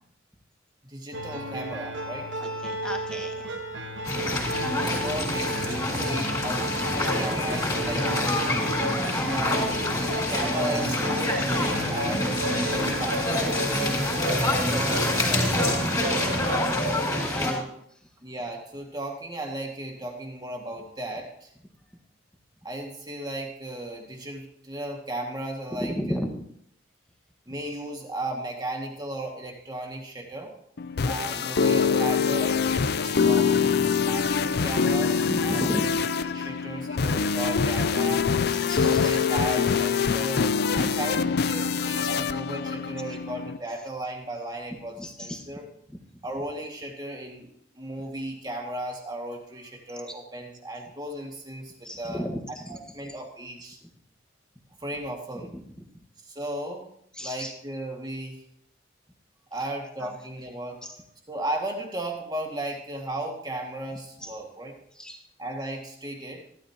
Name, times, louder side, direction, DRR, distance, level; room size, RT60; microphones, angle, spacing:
voice 1, 0.8-2.3 4.8-8.5 9.2-15.8 17.2-17.7 18.2-21.5 22.6-26.2 27.5-30.5 31.0-35.7 36.3-38.3 38.8-45.7 46.2-52.3 52.7-53.8 54.8-55.5 56.3-56.9 57.2-58.4 59.5-64.8 65.4-66.4, right 1 dB, 20° right, 1 dB, 2.1 m, -35 dB
sound 1, 1.1-16.6, right 1 dB, 80° right, 1.3 m, -33 dB
voice 2, 2.4-3.5 7.1-7.7 17.2-17.7 25.7-26.3 35.3-35.9 38.6-39.2 40.8-41.0 45.0-45.5 51.8-52.4 52.7-52.8 57.2-57.5 60.8-60.9 64.2-64.3 65.0-65.2, equal, 5° left, 2 dB, 1.5 m, -33 dB
sound 2, 4.0-17.5, left 1 dB, 20° left, 4.0 m, -26 dB
sound 3, 30.8-43.6, left 6 dB, 55° left, 0.5 m, -24 dB
15.0 x 13.0 x 2.9 m, 0.70 s
head